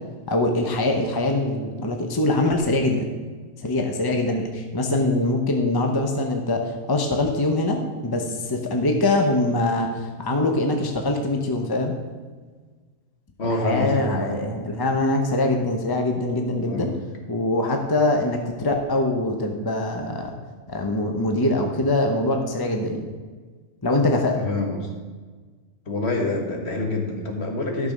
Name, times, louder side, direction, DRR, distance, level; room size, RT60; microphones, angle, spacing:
voice 1, 0.3-3.1 3.6-11.9 13.4-16.9 17.3-20.3 20.7-23.1 23.8-24.4, left 2 dB, 20° left, 3 dB, 0.9 m, -23 dB
voice 2, 13.4-14.5 16.7-17.0 24.3-24.9 25.9-27.9, left 2 dB, 60° left, 1 dB, 1.8 m, -26 dB
12.0 x 6.3 x 5.2 m, 1.4 s
omnidirectional pair, 1.2 m